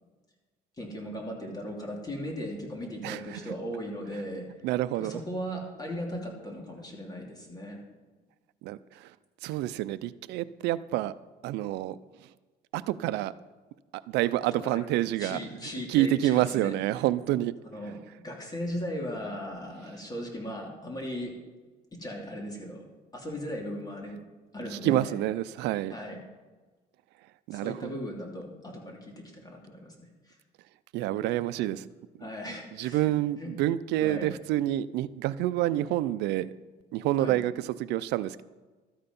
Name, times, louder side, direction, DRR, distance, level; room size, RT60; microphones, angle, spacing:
voice 1, 0.8-4.5 5.0-7.8 14.6-14.8 15.2-16.7 17.6-18.0 18.2-21.3 21.9-22.8 23.1-24.2 24.5-25.2 25.9-26.2 27.5-29.9 30.3-30.4 31.3-31.6 32.2-33.1 33.4-33.5 34.0-34.3 37.2-37.4, equal, 25° left, 0 dB, 2.8 m, -37 dB
voice 2, 3.0-3.4 4.6-5.2 8.6-9.1 9.4-11.1 11.4-12.0 12.7-13.3 13.9-15.4 15.9-17.5 24.7-25.9 27.5-27.9 30.9-31.9 32.8-36.5 36.9-38.4, right 14 dB, 85° right, 15 dB, 0.6 m, -28 dB
13.5 x 8.9 x 5.4 m, 1.3 s
cardioid pair, 110°, 17 cm